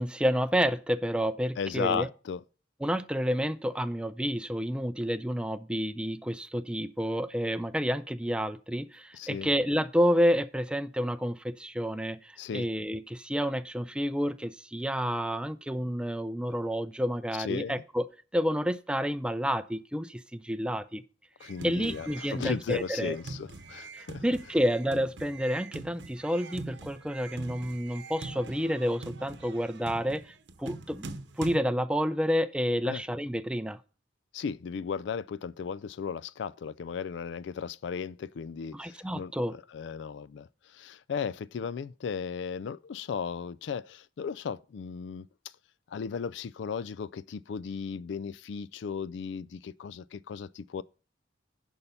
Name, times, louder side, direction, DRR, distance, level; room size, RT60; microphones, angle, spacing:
voice 1, 0.0-2.1 2.8-21.0 21.6-23.2 23.9-30.2 30.6-33.8 38.7-39.5, equal, 5° right, 0.4 m, -29 dB
voice 2, 1.6-2.4 9.1-9.5 12.4-12.7 17.4-17.7 21.4-24.2 32.8-33.0 34.3-45.3 45.9-50.8, left 6 dB, 70° left, 0.3 m, -36 dB
sound 1, 21.4-31.6, right 3 dB, 65° right, 0.9 m, -43 dB
11.0 x 5.7 x 5.4 m
head